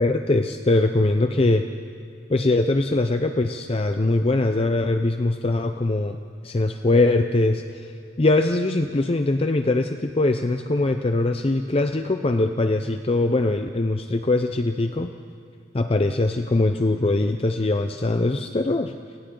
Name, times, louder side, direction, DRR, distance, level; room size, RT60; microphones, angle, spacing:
voice 1, 0.0-1.7 2.3-6.2 6.4-7.9 8.2-15.1 15.7-18.9, left 2 dB, 35° left, 7 dB, 0.6 m, -22 dB
29.5 x 24.5 x 3.8 m, 2.5 s
head